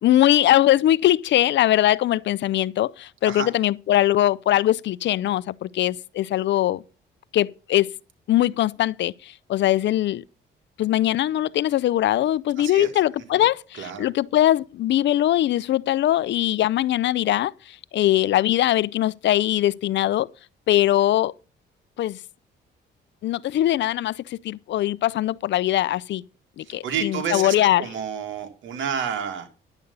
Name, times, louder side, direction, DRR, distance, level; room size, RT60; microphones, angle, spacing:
voice 1, 0.0-6.8 7.3-7.9 8.3-10.2 10.8-20.3 20.7-21.3 22.0-22.2 23.2-26.2 26.6-27.9, left 13 dB, 65° left, 0.5 m, -21 dB
voice 2, 12.6-12.9 13.3-13.4 13.7-14.1 26.6-29.5, right 7 dB, 75° right, 2.4 m, -30 dB
10.5 x 8.0 x 5.5 m
cardioid pair, 90°, 20 cm